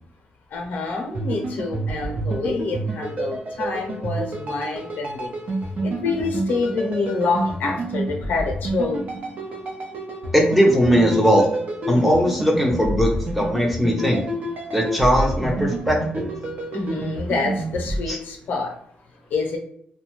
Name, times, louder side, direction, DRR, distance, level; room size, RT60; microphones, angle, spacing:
voice 1, 0.5-5.3 5.8-9.0 16.7-18.7 19.3-19.6, left 4 dB, 75° left, 2 dB, 0.7 m, -27 dB
sound 1, 1.1-18.0, right 1 dB, 50° right, 0.7 m, -29 dB
voice 2, 10.3-11.5 11.9-14.2 14.7-16.3 18.1-18.2, equal, 5° right, -1 dB, 0.6 m, -19 dB
2.6 x 2.2 x 3.0 m, 0.68 s
wide cardioid pair, 145°, 3 cm